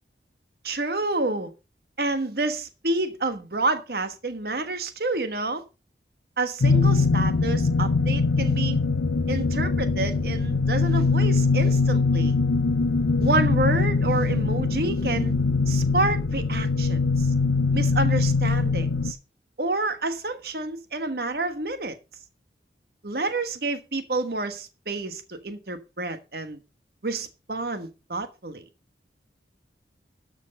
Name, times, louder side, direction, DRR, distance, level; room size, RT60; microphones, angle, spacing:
voice 1, 0.6-1.5 2.0-5.6 6.4-8.8 9.3-12.4 13.2-15.3 15.7-17.3 17.7-19.2 19.6-22.0 23.0-26.6 27.0-28.6, right 2 dB, 55° right, 1.3 m, -29 dB
sound 1, 6.6-19.1, left 4 dB, 85° left, 0.6 m, -22 dB
12.5 x 6.2 x 5.3 m
head